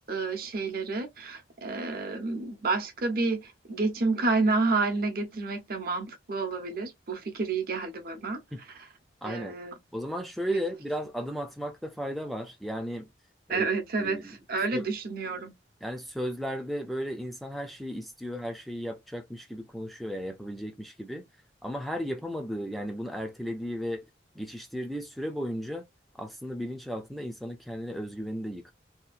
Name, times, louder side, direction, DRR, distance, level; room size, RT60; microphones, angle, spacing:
voice 1, 0.1-8.4 9.2-9.7 10.5-10.6 13.5-14.2 14.5-15.5, right 3 dB, 55° right, 0.7 m, -29 dB
voice 2, 9.2-9.6 9.9-13.1 13.5-13.7 14.0-14.4 14.7-14.9 15.8-21.2 21.6-24.0 24.3-25.8 26.2-28.7, equal, ahead, 0.3 m, -35 dB
2.8 x 2.3 x 2.4 m
head